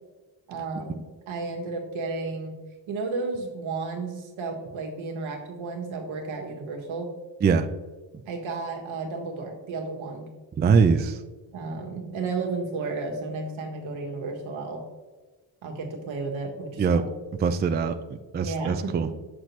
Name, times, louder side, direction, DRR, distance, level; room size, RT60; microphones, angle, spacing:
voice 1, 0.5-2.5 2.9-7.1 8.3-10.3 11.5-14.8 15.6-17.1 18.4-19.1, right 3 dB, 75° right, 1 dB, 1.5 m, -33 dB
voice 2, 10.6-11.1 16.8-17.0 17.4-17.9 18.3-19.1, right 5 dB, 25° right, 9 dB, 0.3 m, -21 dB
6.6 x 6.0 x 3.1 m, 1.3 s
cardioid pair, 80°, 47 cm